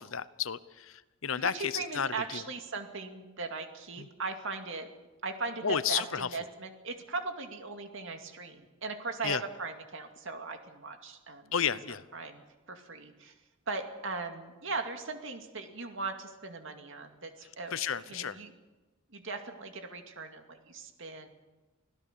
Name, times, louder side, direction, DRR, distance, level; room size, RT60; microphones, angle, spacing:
voice 1, 0.0-2.4 4.0-4.1 5.6-6.3 9.2-9.4 11.5-12.0 17.7-18.4, left 7 dB, 70° left, 16 dB, 0.8 m, -32 dB
voice 2, 1.4-4.9 5.2-11.6 12.1-12.4 12.7-13.3 13.7-18.5 19.1-21.3, right 3 dB, 65° right, 5 dB, 2.3 m, -39 dB
25.0 x 16.5 x 6.8 m, 1.2 s
head